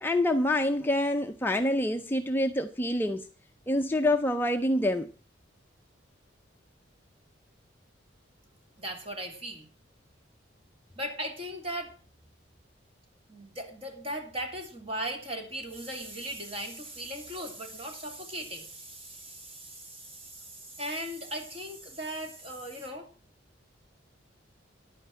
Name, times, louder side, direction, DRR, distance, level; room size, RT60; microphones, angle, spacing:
voice 1, 0.0-3.3 3.7-5.1, left 1 dB, 10° left, 0.5 m, -26 dB
voice 2, 8.8-9.7 11.0-11.9 13.3-23.1, right 1 dB, 30° right, 2.5 m, -38 dB
10.5 x 9.2 x 6.1 m
head